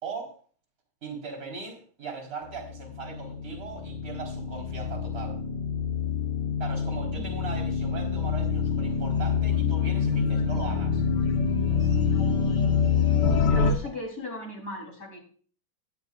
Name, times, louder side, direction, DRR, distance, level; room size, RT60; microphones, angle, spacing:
voice 1, 0.0-0.3 1.0-5.4 6.6-11.0 11.7-12.0 13.5-13.7, right 5 dB, 40° right, 3 dB, 4.7 m, -39 dB
sound 1, 2.9-13.7, left 6 dB, 60° left, 1.8 m, -26 dB
voice 2, 13.5-15.2, left 1 dB, 45° left, 0 dB, 4.2 m, -37 dB
17.0 x 10.5 x 2.5 m, 0.43 s
omnidirectional pair, 2.3 m